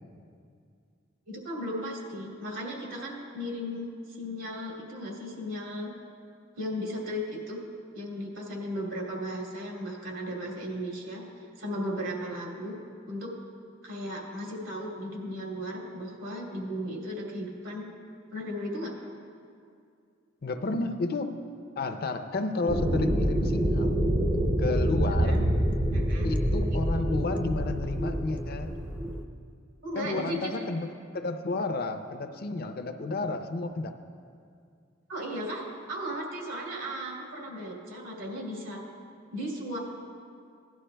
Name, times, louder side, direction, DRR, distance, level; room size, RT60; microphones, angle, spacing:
voice 1, 1.3-5.9 6.6-7.6 7.9-11.2 11.6-12.7 13.1-13.3 13.8-17.8 18.3-18.9 25.0-25.4 25.9-26.3 29.8-30.6 35.1-38.8 39.3-39.8, equal, 80° right, -2 dB, 2.8 m, -36 dB
voice 2, 20.4-21.4 21.8-24.0 24.6-25.4 26.2-28.7 29.9-33.9, left 3 dB, 50° left, 7 dB, 0.5 m, -31 dB
sound 1, 22.7-29.2, equal, 10° right, 0.6 m, -26 dB
17.0 x 11.5 x 2.2 m, 2.3 s
head